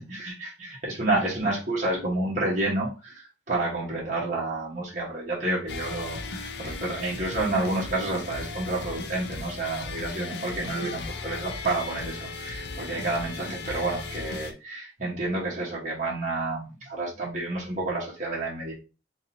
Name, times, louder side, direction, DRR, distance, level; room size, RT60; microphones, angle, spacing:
voice 1, 0.0-18.7, right 2 dB, 45° right, -5 dB, 1.4 m, -29 dB
sound 1, 5.7-14.5, left 3 dB, 65° left, 0.6 m, -36 dB
3.7 x 3.2 x 2.8 m, 0.31 s
head